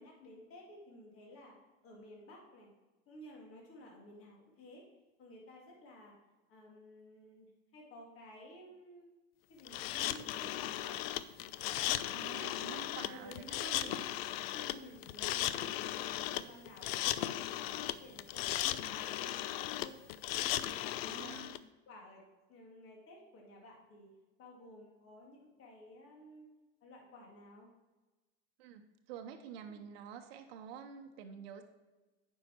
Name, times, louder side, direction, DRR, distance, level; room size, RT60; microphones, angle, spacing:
voice 1, 0.0-1.6 1.8-2.7 3.1-4.8 5.2-6.1 6.5-9.1 9.5-11.0 11.8-12.0 12.3-13.6 14.0-14.1 14.5-21.5 21.9-22.2 22.5-24.1 24.4-26.5 26.8-27.7 29.6-29.9, left 1 dB, 45° left, -1 dB, 2.3 m, -54 dB
sound 1, 9.7-21.6, left 13 dB, 65° left, 0.5 m, -36 dB
voice 2, 12.1-14.1 21.0-21.6 28.6-31.6, right 7 dB, 65° right, 6 dB, 0.8 m, -49 dB
9.1 x 5.6 x 4.4 m, 1.2 s
hypercardioid pair, 85°, 32 cm